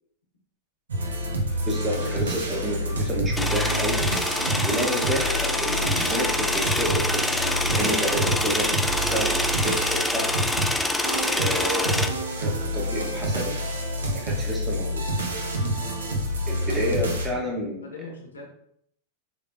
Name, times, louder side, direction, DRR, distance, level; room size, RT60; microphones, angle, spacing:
sound 1, 0.9-17.3, equal, 80° right, 0.6 m, -28 dB
voice 1, 1.7-4.0 4.6-10.3 11.1-12.1 12.4-13.6 14.0-15.0 16.5-17.9, right 1 dB, 15° right, -2 dB, 0.9 m, -30 dB
sound 2, 3.4-12.1, left 2 dB, 5° left, 0.3 m, -26 dB
voice 2, 15.5-16.1 16.6-16.7 17.3-17.4 17.8-18.5, left 3 dB, 85° left, 1 dB, 0.8 m, -42 dB
3.5 x 3.2 x 2.5 m, 0.70 s
hypercardioid pair, 100°, 0 cm